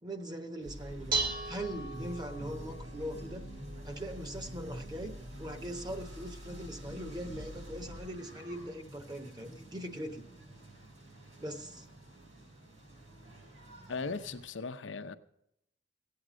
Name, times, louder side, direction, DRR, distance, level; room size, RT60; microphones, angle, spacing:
voice 1, 0.0-3.5 3.8-10.2 11.4-11.9, right 1 dB, 25° right, 1.1 m, -41 dB
sound 1, 0.6-14.5, right 2 dB, 85° right, 6.1 m, -50 dB
Dishes pots and pans, 0.7-8.1, right 3 dB, 50° right, 1.8 m, -40 dB
voice 2, 13.9-15.1, left 4 dB, 80° left, 0.7 m, -38 dB
15.5 x 8.5 x 6.2 m
head